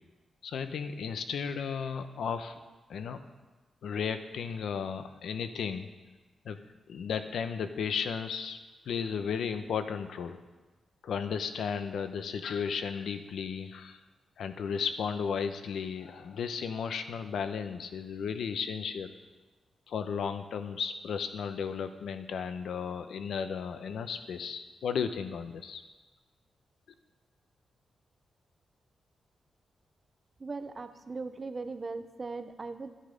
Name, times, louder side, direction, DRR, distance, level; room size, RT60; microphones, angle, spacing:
voice 1, 0.4-2.6 2.9-3.2 3.8-5.9 6.4-6.6 6.9-8.6 8.9-10.4 11.0-14.0 14.4-19.1 19.9-25.8, left 6 dB, 85° left, 9 dB, 0.8 m, -34 dB
voice 2, 30.4-32.9, right 3 dB, 30° right, 9 dB, 0.7 m, -39 dB
12.0 x 10.0 x 5.2 m, 1.2 s
wide cardioid pair, 145°, 0 cm